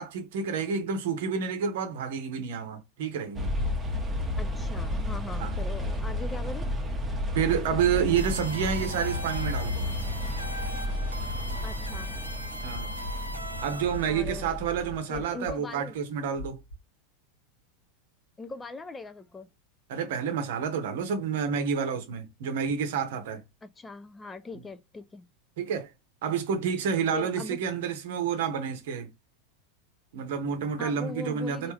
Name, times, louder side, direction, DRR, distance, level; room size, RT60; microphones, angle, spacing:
voice 1, 0.0-3.5 5.4-5.5 7.3-9.9 12.6-12.9 13.6-16.6 19.9-23.4 25.6-25.9 26.2-29.1 30.1-31.7, right 7 dB, 55° right, 0.8 m, -29 dB
sound 1, 3.3-15.0, left 1 dB, 15° right, 0.8 m, -32 dB
voice 2, 4.4-6.7 11.6-12.2 14.1-14.6 15.1-16.0 18.4-19.5 23.6-25.3 27.1-27.6 30.8-31.7, left 3 dB, 15° left, 0.3 m, -40 dB
sound 2, 8.2-14.1, equal, 90° right, 0.5 m, -39 dB
sound 3, 11.6-14.6 14.8-16.7, equal, 70° left, 0.7 m, -42 dB
3.3 x 2.5 x 3.2 m
figure-of-eight pair, 85°, 0 cm